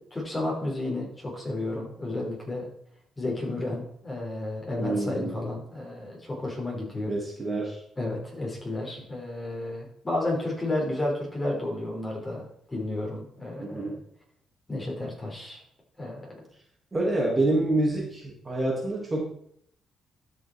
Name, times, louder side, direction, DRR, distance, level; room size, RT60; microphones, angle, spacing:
voice 1, 0.0-2.7 3.2-7.1 8.0-14.0 14.7-15.6 16.0-16.4, left 2 dB, 20° left, -2 dB, 4.8 m, -32 dB
voice 2, 4.8-5.4 7.1-7.8 13.6-14.0 16.9-19.2, right 2 dB, 25° right, -2 dB, 2.9 m, -27 dB
12.5 x 6.1 x 4.7 m, 0.68 s
cardioid pair, 90°, 0 cm